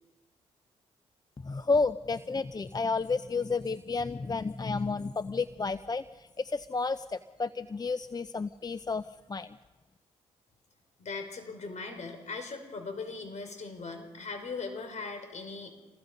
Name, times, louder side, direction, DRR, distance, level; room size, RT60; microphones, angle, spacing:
voice 1, 1.4-9.6, left 4 dB, 25° left, 14 dB, 0.7 m, -31 dB
voice 2, 11.0-15.8, left 4 dB, 55° left, 6 dB, 5.4 m, -39 dB
28.0 x 20.5 x 5.4 m, 1.2 s
hypercardioid pair, 45°, 15 cm